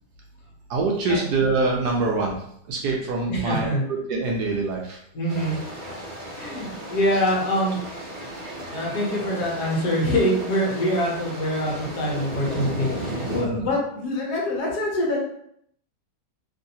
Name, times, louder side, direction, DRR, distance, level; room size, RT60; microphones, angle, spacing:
voice 1, 0.7-2.3 2.7-5.0 7.1-7.2 13.3-13.7, right 3 dB, 70° right, -1 dB, 1.0 m, -25 dB
voice 2, 3.3-3.8 5.1-5.6 6.3-7.8 8.7-15.2, equal, 65° left, -3 dB, 1.3 m, -25 dB
sound 1, 5.3-13.4, right 1 dB, 45° right, 0.5 m, -34 dB
3.0 x 2.6 x 2.7 m, 0.70 s
omnidirectional pair, 1.9 m